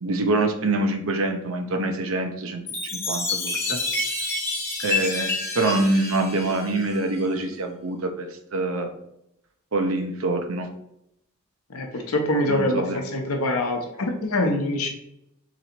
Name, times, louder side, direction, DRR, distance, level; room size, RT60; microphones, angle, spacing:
voice 1, 0.0-2.6 2.9-3.8 4.8-8.9 9.7-10.7 12.5-13.0, right 2 dB, 65° right, 5 dB, 0.6 m, -25 dB
Chime, 2.7-7.3, left 3 dB, 10° left, 0.8 m, -29 dB
voice 2, 11.7-14.9, left 1 dB, 80° left, 3 dB, 0.8 m, -24 dB
3.9 x 3.0 x 4.4 m, 0.79 s
head